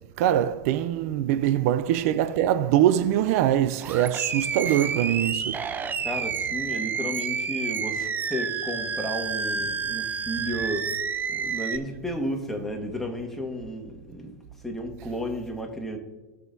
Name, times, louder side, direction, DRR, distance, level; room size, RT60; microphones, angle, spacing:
voice 1, 0.2-5.7, right 11 dB, 65° right, 0.5 m, -23 dB
Animal, 3.8-11.8, right 6 dB, 20° right, 0.6 m, -29 dB
voice 2, 6.0-10.9 11.3-14.3 14.6-16.0, equal, 5° left, 1.6 m, -33 dB
19.0 x 6.5 x 2.7 m
supercardioid pair, 125°, 9 cm